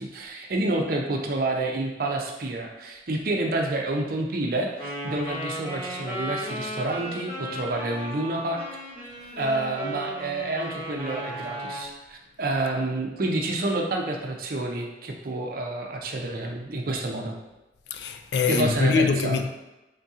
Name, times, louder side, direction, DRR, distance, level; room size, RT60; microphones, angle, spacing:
voice 1, 0.0-8.6 9.4-17.3 18.5-19.4, right 2 dB, 50° right, 0.5 m, -28 dB
Wind instrument woodwind instrument, 4.8-11.9, equal, 25° left, 1.1 m, -35 dB
voice 2, 17.9-19.5, left 5 dB, 60° left, 0.3 m, -23 dB
3.7 x 2.8 x 3.6 m
head